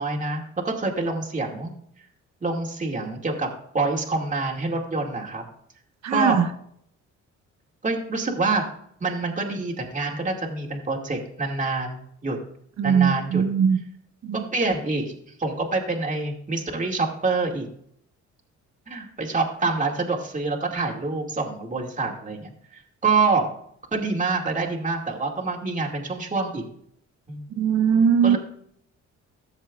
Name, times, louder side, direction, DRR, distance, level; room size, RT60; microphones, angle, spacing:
voice 1, 0.0-1.7 2.4-5.4 6.1-6.4 7.8-8.6 9.0-12.4 12.8-13.4 14.3-17.7 18.9-23.5 23.9-26.6 27.3-27.5 28.2-28.4, right 3 dB, 25° right, -1 dB, 2.2 m, -26 dB
voice 2, 6.0-6.4 12.8-13.8 14.2-14.4 27.6-28.4, right 7 dB, 65° right, 9 dB, 1.1 m, -20 dB
15.0 x 7.2 x 2.4 m, 0.67 s
cardioid pair, 90°, 30 cm